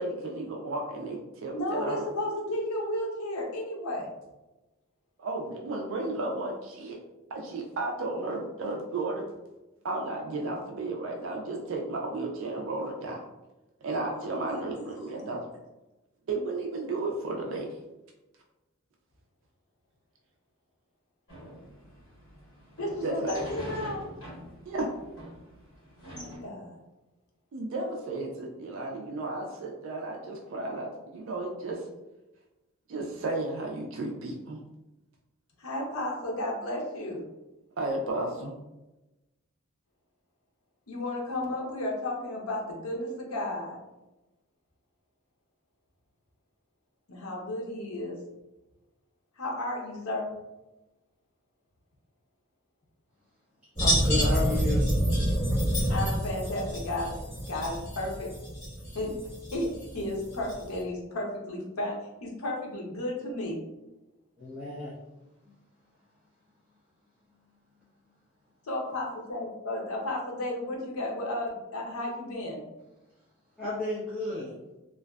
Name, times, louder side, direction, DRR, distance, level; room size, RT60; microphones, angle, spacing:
voice 1, 0.0-2.0 5.2-7.0 7.3-9.3 9.8-13.3 13.8-15.4 16.3-17.7 23.0-23.4 24.7-24.9 27.5-31.9 32.9-34.6 37.8-38.5, right 2 dB, 60° right, 0 dB, 0.3 m, -33 dB
voice 2, 1.5-4.1 14.2-15.3 22.8-24.0 26.1-26.8 35.6-37.2 40.9-43.8 47.1-48.2 49.4-50.3 55.9-57.2 57.5-58.3 58.9-59.1 59.5-63.6 68.6-72.6, left 1 dB, 80° left, -2 dB, 0.6 m, -33 dB
sound 1, 21.3-26.4, equal, 65° left, 1.2 m, -44 dB
sound 2, 53.8-60.8, equal, 30° left, 1.2 m, -28 dB
voice 3, 53.8-54.8 64.4-64.9 65.4-65.5 73.6-74.5, left 2 dB, 5° right, -12 dB, 0.6 m, -32 dB
2.5 x 2.2 x 2.2 m, 1.0 s
head